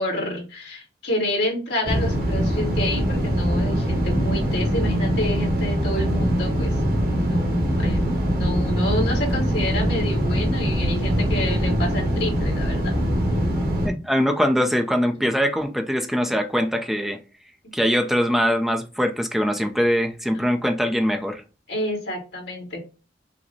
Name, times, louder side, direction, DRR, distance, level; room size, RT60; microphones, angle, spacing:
voice 1, 0.0-6.7 7.2-12.9 15.1-15.3 20.3-20.5 21.7-22.8, left 1 dB, 70° left, 2.2 m, -29 dB
sound 1, 1.8-13.9, equal, 55° right, 1.5 m, -22 dB
voice 2, 13.8-17.2 17.7-21.4, equal, ahead, 0.6 m, -22 dB
5.8 x 2.2 x 3.9 m
head